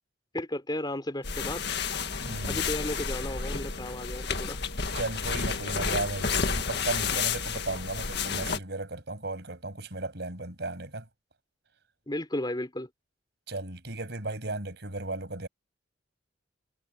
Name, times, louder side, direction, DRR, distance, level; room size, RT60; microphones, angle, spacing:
voice 1, 0.3-1.6 2.5-4.6 12.1-12.9, left 1 dB, 25° left, 3.4 m, -34 dB
sound 1, 1.2-8.6, left 5 dB, 60° left, 1.8 m, -31 dB
voice 2, 2.2-2.6 4.9-11.0 13.5-15.5, right 2 dB, 60° right, 6.6 m, -35 dB
head